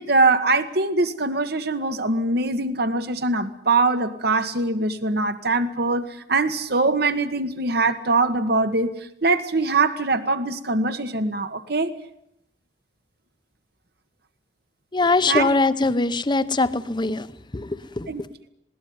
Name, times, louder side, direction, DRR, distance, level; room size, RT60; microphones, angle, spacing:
voice 1, 0.0-6.0 6.3-8.9 9.2-11.9 15.3-15.5 18.1-18.5, right 3 dB, 60° right, 9 dB, 1.6 m, -22 dB
voice 2, 14.9-18.3, left 3 dB, 25° left, 14 dB, 0.8 m, -22 dB
20.0 x 18.0 x 9.6 m, 0.80 s
head